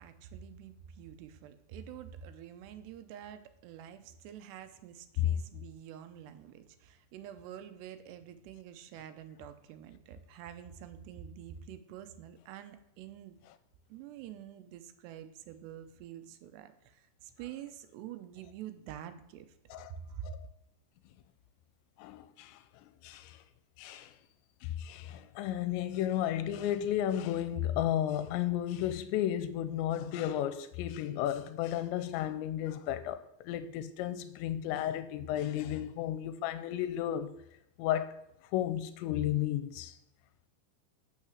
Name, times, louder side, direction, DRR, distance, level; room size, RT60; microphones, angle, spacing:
voice 1, 0.0-13.4 13.9-19.5 20.0-20.3, right 10 dB, 80° right, 2.7 m, -47 dB
voice 2, 22.0-22.6 23.0-23.4 23.8-24.1 24.6-37.3 37.8-38.1 38.5-39.9, left 11 dB, 85° left, 2.8 m, -33 dB
8.7 x 6.6 x 6.3 m
omnidirectional pair, 5.1 m